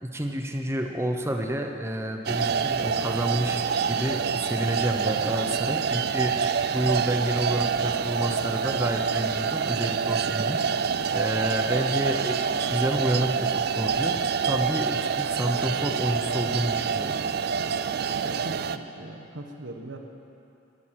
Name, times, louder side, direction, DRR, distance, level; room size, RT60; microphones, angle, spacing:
voice 1, 0.0-10.6 11.1-14.2 14.5-17.3, right 1 dB, 15° right, 4 dB, 0.9 m, -29 dB
sound 1, 2.3-18.8, right 6 dB, 55° right, 0.4 m, -27 dB
voice 2, 18.2-20.0, right 1 dB, 80° right, 3 dB, 1.3 m, -40 dB
12.5 x 11.0 x 7.7 m, 2.8 s
head